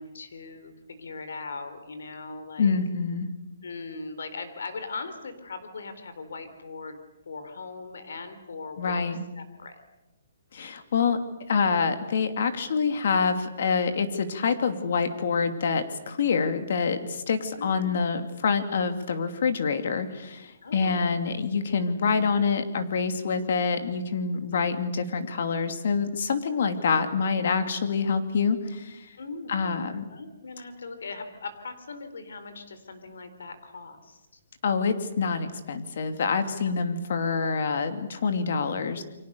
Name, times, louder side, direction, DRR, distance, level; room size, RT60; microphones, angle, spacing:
voice 1, 0.0-2.8 3.6-7.0 7.3-9.8 17.6-18.0 20.6-21.0 24.3-24.8 29.2-34.2 36.7-36.8, left 3 dB, 80° left, 9 dB, 3.9 m, -40 dB
voice 2, 2.6-3.3 8.8-9.2 10.5-11.2 11.5-29.1 29.5-30.0 34.6-39.0, left 5 dB, 55° left, 8 dB, 2.7 m, -26 dB
29.5 x 24.0 x 6.9 m, 1.0 s
hypercardioid pair, 170°, 0 cm